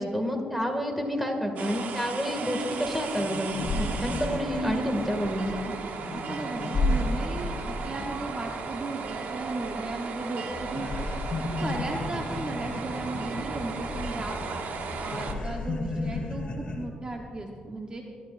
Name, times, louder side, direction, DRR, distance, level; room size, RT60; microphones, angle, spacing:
voice 1, 0.0-3.5 3.7-5.6, equal, 5° right, 3 dB, 2.0 m, -29 dB
sound 1, 1.6-15.3, right 5 dB, 75° right, 1.1 m, -36 dB
sound 2, 2.8-2.9 3.2-10.2 10.5-16.9, left 2 dB, 40° left, 1.8 m, -33 dB
voice 2, 6.1-11.1 11.5-14.3 15.0-18.0, right 2 dB, 30° right, 1 dB, 1.0 m, -36 dB
22.0 x 11.5 x 2.5 m, 2.4 s
cardioid pair, 95°, 3 cm